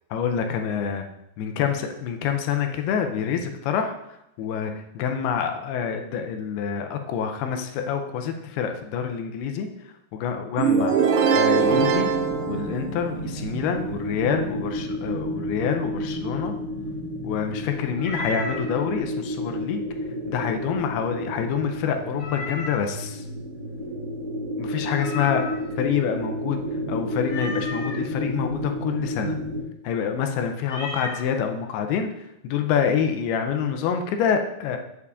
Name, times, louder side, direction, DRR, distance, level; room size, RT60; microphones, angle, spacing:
voice 1, 0.1-1.0 1.4-9.7 10.1-11.0 11.3-12.1 12.5-16.6 17.2-19.8 20.3-23.2 24.6-25.4 25.8-26.6 26.9-29.4 29.8-32.1 32.4-34.8, left 7 dB, 85° left, 5 dB, 2.5 m, -27 dB
sound 1, 10.6-13.4, right 6 dB, 80° right, 2.6 m, -21 dB
sound 2, 11.6-29.6, equal, 60° right, 4.5 m, -31 dB
Meow, 18.0-18.7 22.2-23.0 25.0-25.8 27.3-28.0 30.6-31.3, left 2 dB, 40° left, 2.0 m, -34 dB
8.2 x 6.9 x 2.4 m, 0.84 s
omnidirectional pair, 4.6 m